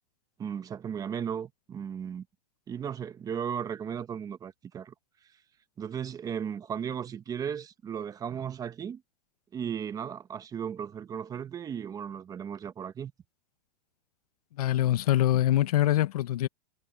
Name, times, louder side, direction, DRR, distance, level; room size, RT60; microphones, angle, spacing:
voice 1, 0.4-2.2 2.7-4.9 5.8-9.0 9.5-13.1, right 8 dB, 20° right, 1.3 m, -35 dB
voice 2, 14.6-16.5, left 13 dB, 70° left, 1.1 m, -24 dB
hypercardioid pair, 140°, 20 cm